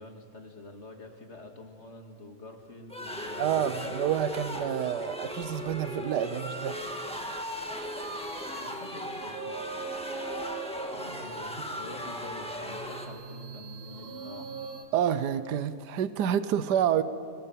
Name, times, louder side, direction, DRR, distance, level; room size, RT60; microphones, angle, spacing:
voice 1, 0.0-3.8 8.6-9.6 11.1-14.5, left 2 dB, 40° left, 3 dB, 2.4 m, -47 dB
sound 1, 2.9-13.1, equal, 5° left, 1.6 m, -37 dB
voice 2, 3.4-6.8 14.9-17.0, right 9 dB, 80° right, 13 dB, 1.4 m, -28 dB
sound 2, 7.5-14.8, right 4 dB, 35° right, 2.0 m, -42 dB
29.5 x 18.0 x 7.6 m, 2.2 s
omnidirectional pair, 1.8 m